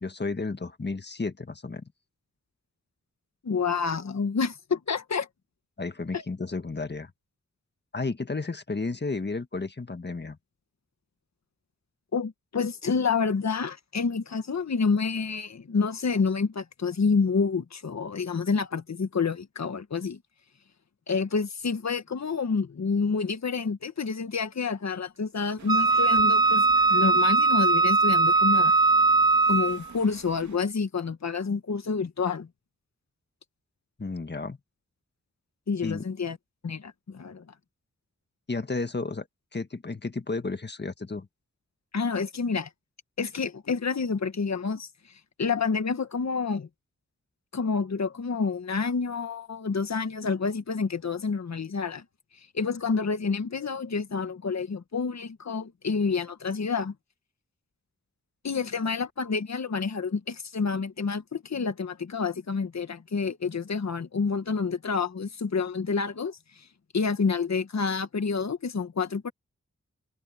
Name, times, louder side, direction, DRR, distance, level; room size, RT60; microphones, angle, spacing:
voice 1, 0.0-1.9 5.8-7.1 7.9-10.4 34.0-34.6 35.8-36.0 38.5-39.3 39.5-41.3, left 3 dB, 35° left, 1.6 m, -32 dB
voice 2, 3.4-5.3 6.1-6.2 12.1-20.2 21.1-26.6 26.9-28.7 29.5-32.5 35.7-36.4 36.6-37.4 41.9-42.7 43.2-46.7 47.5-52.0 52.3-56.9 58.4-66.7 66.9-69.3, left 5 dB, 65° left, 1.6 m, -28 dB
sound 1, 25.6-30.6, right 5 dB, 70° right, 3.0 m, -47 dB
Wind instrument woodwind instrument, 25.7-29.9, right 3 dB, 15° right, 0.3 m, -20 dB
cardioid pair, 60°, 30 cm